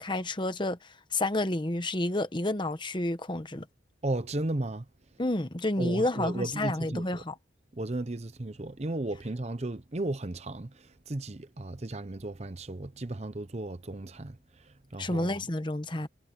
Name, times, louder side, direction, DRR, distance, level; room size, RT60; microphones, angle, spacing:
voice 1, 0.0-3.6 5.2-7.3 15.0-16.1, left 1 dB, 25° left, 1.1 m, -30 dB
voice 2, 4.0-4.8 5.8-7.2 7.7-14.4 14.9-15.3, right 2 dB, 35° right, 0.8 m, -34 dB
head